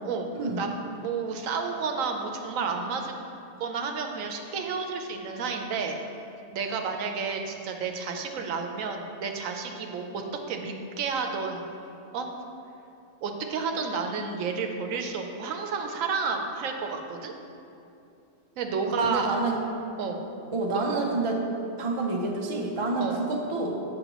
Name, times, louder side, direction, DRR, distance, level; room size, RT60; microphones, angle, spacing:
voice 1, 0.0-3.3 3.6-6.0 6.5-11.6 12.1-12.3 13.2-17.3 18.6-19.3 20.0-20.3 20.7-20.8 23.0-23.2, right 5 dB, 90° right, 4 dB, 1.1 m, -31 dB
voice 2, 19.1-19.6 20.5-21.4 21.8-23.8, right 3 dB, 35° right, 0 dB, 0.5 m, -28 dB
7.9 x 6.1 x 3.0 m, 2.7 s
omnidirectional pair, 1.3 m